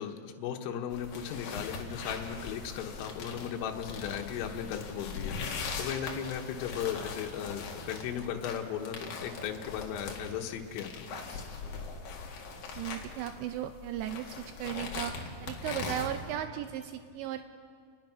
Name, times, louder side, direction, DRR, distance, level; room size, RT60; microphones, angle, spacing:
voice 1, 0.0-11.1, left 8 dB, 80° left, 3 dB, 3.9 m, -36 dB
sound 1, 0.9-16.3, left 4 dB, 55° left, 3.1 m, -41 dB
voice 2, 12.7-15.1 15.4-17.5, right 11 dB, 85° right, 8 dB, 2.5 m, -36 dB
29.5 x 20.0 x 6.1 m, 2.2 s
omnidirectional pair, 5.9 m